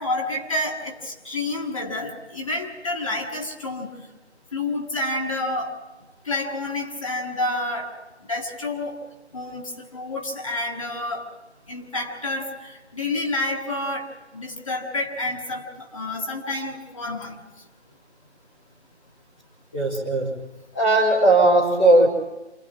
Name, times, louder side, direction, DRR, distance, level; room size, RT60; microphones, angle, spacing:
voice 1, 0.0-3.9 4.5-5.8 6.2-7.9 8.3-9.0 9.3-11.3 11.7-17.4, left 2 dB, 30° left, 0 dB, 1.6 m, -29 dB
voice 2, 19.7-20.3 20.7-22.1, right 2 dB, 10° left, -9 dB, 0.9 m, -17 dB
27.5 x 22.0 x 4.6 m, 1.0 s
figure-of-eight pair, 165°, 34 cm